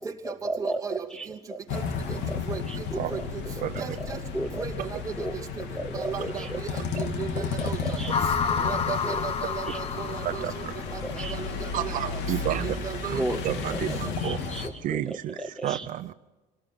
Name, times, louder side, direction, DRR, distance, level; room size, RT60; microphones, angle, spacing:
voice 1, 0.0-1.8 2.1-3.2 3.6-3.9 4.3-4.7 5.2-5.4 5.7-7.1 7.3-8.3 8.6-8.7 9.0-9.2 9.7-9.8 11.0-11.7 13.1-15.9, right 1 dB, 5° left, 0 dB, 0.8 m, -35 dB
voice 2, 0.6-1.0 2.5-2.6 3.1-3.2 3.8-4.2 4.6-5.0 5.9-6.4 7.0-7.3 7.7-7.8 8.6-10.4 10.9-11.3 11.8-12.2 12.6-13.2, right 7 dB, 20° right, 0 dB, 2.5 m, -35 dB
sound 1, 1.7-14.7, left 5 dB, 80° left, 2.7 m, -33 dB
sound 2, 8.1-11.4, left 6 dB, 35° left, 1.1 m, -30 dB
voice 3, 10.2-10.7 11.7-12.8 13.0-14.5 14.8-16.1, right 13 dB, 50° right, 10 dB, 0.6 m, -31 dB
28.0 x 18.5 x 6.3 m, 1.1 s
cardioid pair, 165°, 18 cm